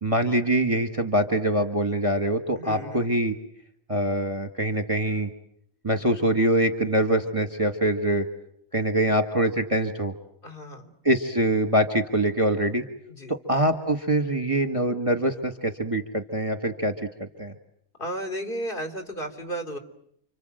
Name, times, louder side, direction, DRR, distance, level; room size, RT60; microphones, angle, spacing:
voice 1, 0.0-3.4 3.9-5.3 5.8-8.2 8.7-10.1 11.0-12.9 13.3-17.5, right 1 dB, 25° right, 6 dB, 1.5 m, -24 dB
voice 2, 2.6-3.0 10.4-10.9 13.1-13.3 18.0-19.8, right 1 dB, 35° left, 5 dB, 3.5 m, -33 dB
29.5 x 26.0 x 7.8 m, 0.74 s
omnidirectional pair, 1.5 m